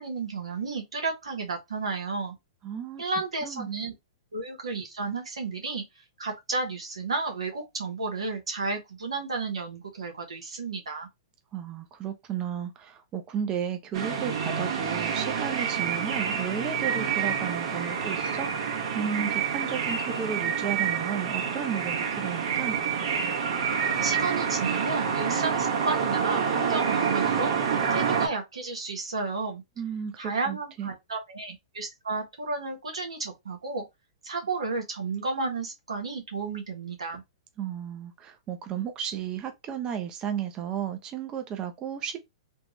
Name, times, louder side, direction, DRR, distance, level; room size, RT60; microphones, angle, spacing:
voice 1, 0.0-2.3 3.0-3.9 4.3-5.8 6.2-11.1 24.0-27.5 27.9-29.6 30.2-33.8 34.2-37.2, right 3 dB, 90° right, 1.4 m, -32 dB
voice 2, 2.6-3.0 3.4-3.7 11.5-22.8 29.8-30.9 37.6-42.2, right 8 dB, 30° right, 0.7 m, -33 dB
sound 1, 13.9-28.3, right 6 dB, 70° right, 1.5 m, -28 dB
3.5 x 2.4 x 3.2 m
hypercardioid pair, 120°, 3 cm